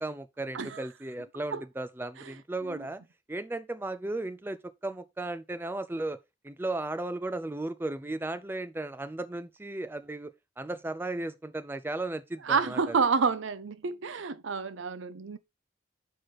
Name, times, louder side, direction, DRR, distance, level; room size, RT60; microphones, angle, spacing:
voice 1, 0.0-3.0 3.3-6.2 6.4-13.0, right 2 dB, 10° right, 0.4 m, -35 dB
voice 2, 12.4-15.4, right 5 dB, 80° right, 0.6 m, -29 dB
6.3 x 4.7 x 4.2 m
head